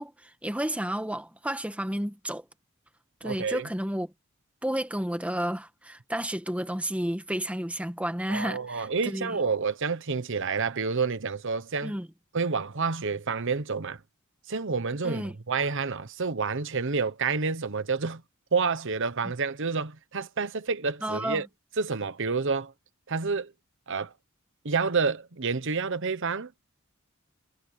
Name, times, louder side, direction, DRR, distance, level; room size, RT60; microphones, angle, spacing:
voice 1, 0.0-2.4 3.2-4.1 4.6-9.4 11.8-12.1 15.0-15.3 21.0-21.4, right 1 dB, 5° right, 1.3 m, -31 dB
voice 2, 3.2-3.7 8.3-11.9 12.3-14.0 14.5-18.2 18.5-21.5 21.8-22.7 23.1-23.5 23.9-24.1 24.6-26.6, right 4 dB, 65° right, 1.0 m, -29 dB
head